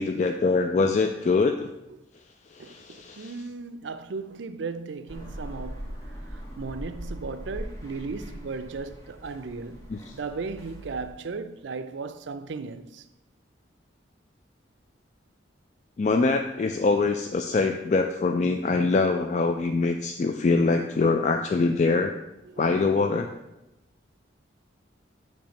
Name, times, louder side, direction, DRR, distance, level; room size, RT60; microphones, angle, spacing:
voice 1, 0.0-1.7 2.5-3.3 9.9-10.1 16.0-22.1 22.6-23.3, left 3 dB, 40° left, 0.3 m, -24 dB
voice 2, 2.6-5.9 6.6-9.8 10.1-13.0 22.5-22.6 22.9-23.0, right 4 dB, 80° right, 0.5 m, -36 dB
sound 1, 5.1-11.1, equal, 20° left, 1.4 m, -40 dB
8.7 x 3.2 x 5.1 m
head